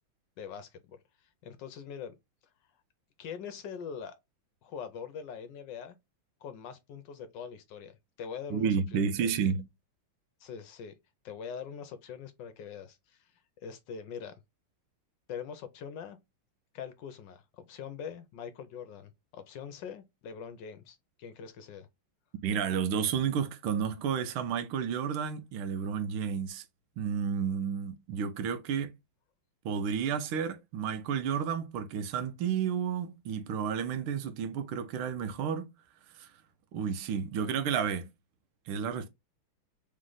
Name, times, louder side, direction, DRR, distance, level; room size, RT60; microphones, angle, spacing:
voice 1, 0.4-1.0 1.4-2.1 3.2-4.1 4.6-5.9 6.4-9.4 10.4-10.9 11.2-13.2 13.6-14.4 15.3-16.2 16.7-21.9, left 7 dB, 75° left, 1.2 m, -43 dB
voice 2, 8.5-9.7 22.4-26.6 27.0-28.9 29.6-35.7 36.1-36.3 36.7-38.1 38.7-39.1, right 7 dB, 85° right, 1.6 m, -31 dB
3.6 x 3.2 x 3.8 m
omnidirectional pair, 2.2 m